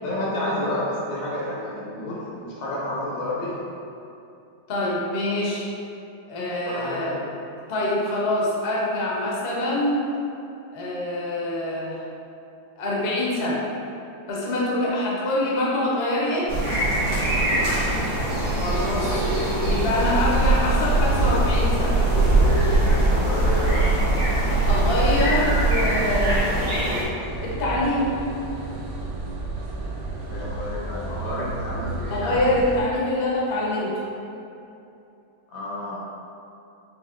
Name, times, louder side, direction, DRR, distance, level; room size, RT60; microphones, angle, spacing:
voice 1, 0.0-3.6 6.4-7.2 17.3-17.8 22.8-23.9 30.2-32.5 35.5-36.0, left 1 dB, 90° left, -7 dB, 1.9 m, -30 dB
voice 2, 4.7-5.7 6.3-7.1 7.7-10.1 10.7-12.0 12.8-13.6 14.3-16.6 18.5-19.1 19.6-22.0 24.6-26.6 27.4-28.2 32.1-34.0, left 1 dB, 50° left, -5 dB, 0.7 m, -25 dB
sound 1, 16.5-27.0, right 2 dB, 90° right, 2.0 m, -21 dB
sound 2, 27.2-32.8, right 2 dB, 65° right, 0.9 m, -32 dB
6.3 x 2.9 x 2.4 m, 2.8 s
omnidirectional pair, 2.1 m